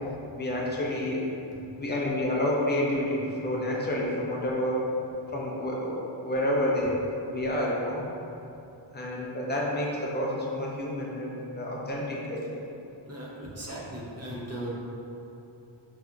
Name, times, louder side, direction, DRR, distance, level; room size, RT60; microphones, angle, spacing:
voice 1, 0.4-1.2 1.8-4.8 5.3-8.0 8.9-12.6, left 1 dB, 20° left, -4 dB, 0.6 m, -29 dB
voice 2, 13.1-14.7, right 1 dB, 30° right, -5 dB, 0.7 m, -38 dB
5.1 x 2.7 x 2.3 m, 2.7 s
wide cardioid pair, 105°, 47 cm